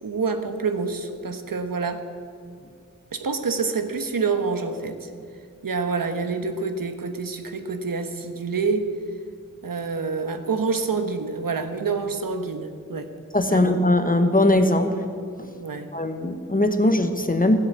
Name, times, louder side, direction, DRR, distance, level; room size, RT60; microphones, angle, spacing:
voice 1, 0.0-2.1 3.1-5.1 5.6-8.9 9.6-13.1 13.5-13.8 15.6-15.9, right 4 dB, 80° right, 8 dB, 1.2 m, -27 dB
voice 2, 13.3-15.0 15.4-15.5 15.9-17.6, left 1 dB, 25° left, 7 dB, 1.1 m, -20 dB
14.5 x 8.1 x 8.2 m, 2.4 s
wide cardioid pair, 75°, 33 cm